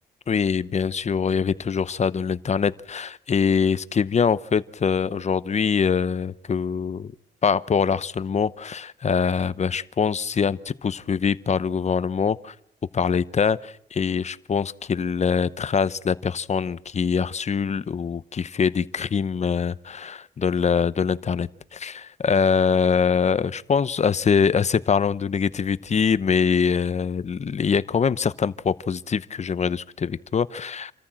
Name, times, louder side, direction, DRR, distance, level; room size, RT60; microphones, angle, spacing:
voice 1, 0.3-7.1 7.4-12.5 12.9-30.9, left 6 dB, 40° left, 17 dB, 0.8 m, -23 dB
27.5 x 14.0 x 7.6 m, 0.74 s
cardioid pair, 95°, 18 cm